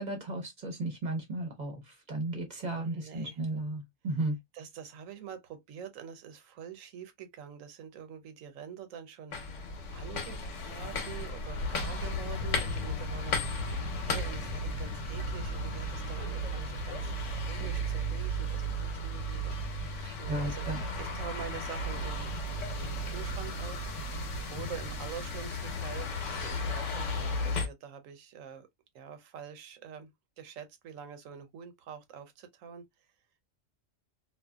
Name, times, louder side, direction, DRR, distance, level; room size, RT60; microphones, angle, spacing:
voice 1, 0.0-4.4 20.0-20.8, right 2 dB, 40° right, 0.9 m, -35 dB
voice 2, 2.7-3.4 4.5-9.7 9.9-17.1 17.4-19.5 20.2-20.6 21.0-22.3 22.7-23.9 24.5-28.7 28.9-30.1 30.4-32.8, right 8 dB, 90° right, 1.0 m, -46 dB
sound 1, 9.3-27.7, left 1 dB, 75° left, 1.1 m, -34 dB
2.5 x 2.4 x 2.3 m
omnidirectional pair, 1.3 m